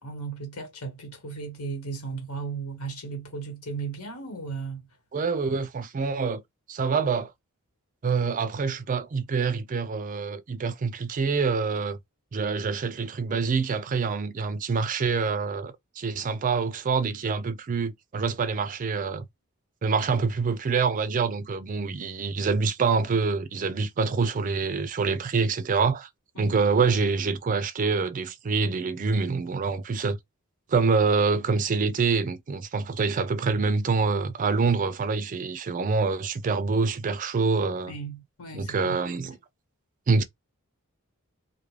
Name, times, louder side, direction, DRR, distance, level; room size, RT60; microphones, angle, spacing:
voice 1, 0.0-4.8 26.3-26.6 37.9-38.9, right 4 dB, 90° left, 1.3 m, -36 dB
voice 2, 5.1-6.4 6.7-7.3 8.0-12.0 12.3-19.3 19.8-26.1 26.4-30.2 30.7-37.9 38.5-39.4 40.1-40.2, right 4 dB, 35° right, 0.4 m, -26 dB
2.3 x 2.1 x 3.1 m
head